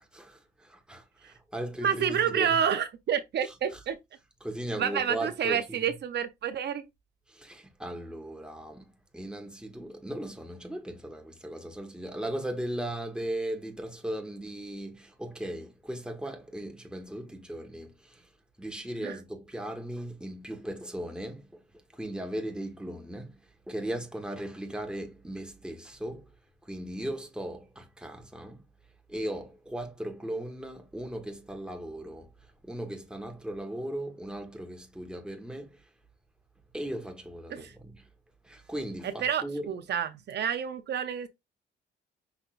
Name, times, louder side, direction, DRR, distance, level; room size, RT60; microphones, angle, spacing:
voice 1, 0.0-2.6 3.4-3.8 4.4-6.0 7.3-18.3 18.6-26.3 26.6-28.6 29.1-35.9 36.7-38.1 38.4-39.7, right 1 dB, 5° right, 1.3 m, -38 dB
voice 2, 1.8-4.0 4.8-6.9 19.0-19.2 37.5-37.7 39.2-41.3, right 8 dB, 60° right, 0.7 m, -29 dB
5.8 x 3.5 x 2.5 m
cardioid pair, 90°, 20 cm